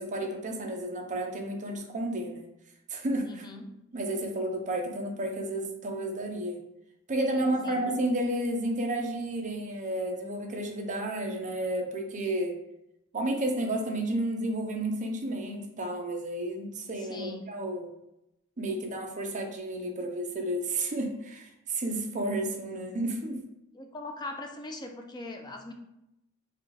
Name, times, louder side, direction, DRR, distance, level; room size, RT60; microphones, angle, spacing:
voice 1, 0.0-2.5 2.9-3.4 3.9-6.6 7.1-12.5 13.1-17.9 18.6-23.4, right 1 dB, 35° right, 2 dB, 0.6 m, -31 dB
voice 2, 3.2-3.8 7.4-7.8 17.0-17.5 23.7-25.7, left 2 dB, 20° left, 4 dB, 0.4 m, -41 dB
4.6 x 2.3 x 3.3 m, 0.86 s
head